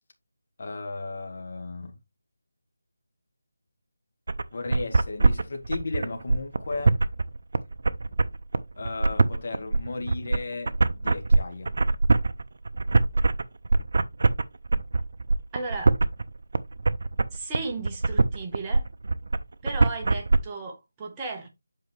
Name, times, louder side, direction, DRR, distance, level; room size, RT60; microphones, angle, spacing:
voice 1, 0.6-1.9 4.5-7.0 8.8-11.7, left 3 dB, 45° left, 1.9 m, -35 dB
sound 1, 4.3-20.4, right 3 dB, 55° right, 0.6 m, -23 dB
voice 2, 15.5-15.9 17.3-18.8 19.6-21.5, right 3 dB, 15° right, 1.2 m, -35 dB
8.0 x 4.9 x 3.3 m
figure-of-eight pair, 170°, 0 cm